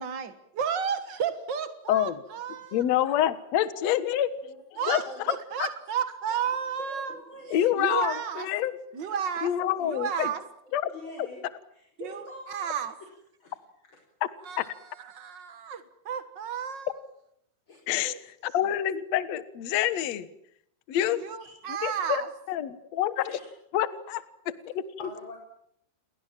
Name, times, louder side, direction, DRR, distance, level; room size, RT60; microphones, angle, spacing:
voice 1, 0.0-2.8 4.8-7.1 7.5-8.5 8.9-9.5 9.8-10.4 12.0-12.9 14.4-14.7 15.0-16.9 18.0-18.2 21.2-22.3, right 7 dB, 65° right, 10 dB, 1.0 m, -32 dB
voice 2, 1.9-2.2 2.7-4.3 4.9-5.0 5.6-5.7 7.5-8.8 9.4-10.3 10.7-10.9 11.2-11.3 14.2-14.3 14.6-14.7 17.9-20.3 20.9-21.2 21.8-22.2 22.5-23.2 23.7-24.2 24.7-24.8, left 11 dB, 60° left, 13 dB, 2.0 m, -27 dB
voice 3, 4.4-5.2 6.8-7.6 10.9-11.4 11.7-12.8 13.4-13.5 17.7-17.8 21.4-21.6 23.3-23.5 25.0-25.4, left 1 dB, 30° left, 1 dB, 5.6 m, -43 dB
29.5 x 22.5 x 7.5 m, 0.74 s
omnidirectional pair, 4.5 m